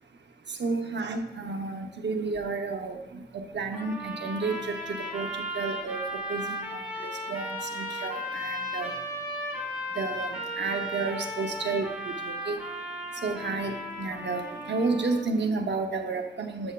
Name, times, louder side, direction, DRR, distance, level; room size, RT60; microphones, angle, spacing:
voice 1, 0.5-9.1 9.9-12.6 13.1-16.7, right 3 dB, 75° right, 5 dB, 0.7 m, -32 dB
sound 1, 3.7-15.3, equal, 10° right, 2.4 m, -35 dB
8.2 x 7.7 x 2.2 m, 0.99 s
wide cardioid pair, 95°, 18 cm